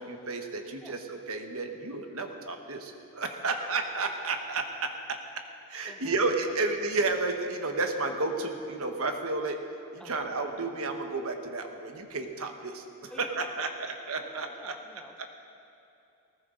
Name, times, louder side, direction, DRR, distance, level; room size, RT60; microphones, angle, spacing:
voice 1, 0.0-9.6 9.9-14.7, right 3 dB, 65° right, 5 dB, 1.3 m, -32 dB
voice 2, 5.9-6.2 10.0-10.3 13.1-15.3, left 1 dB, 5° left, 2 dB, 0.9 m, -51 dB
19.5 x 19.0 x 3.9 m, 2.8 s
head